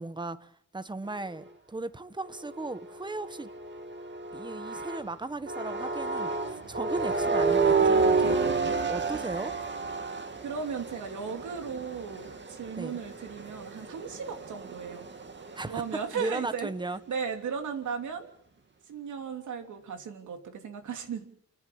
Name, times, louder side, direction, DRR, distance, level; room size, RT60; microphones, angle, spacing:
voice 1, 0.0-3.5 4.3-9.5 12.8-12.9 15.5-17.0, right 2 dB, 15° right, 1.1 m, -37 dB
sound 1, 2.2-5.1 5.5-15.9, right 4 dB, 40° right, 2.3 m, -30 dB
voice 2, 8.0-9.4 10.4-15.1 15.6-16.7 17.1-18.3 18.9-21.2, right 6 dB, 90° right, 3.1 m, -36 dB
29.5 x 11.0 x 8.8 m
cardioid pair, 95°, 29 cm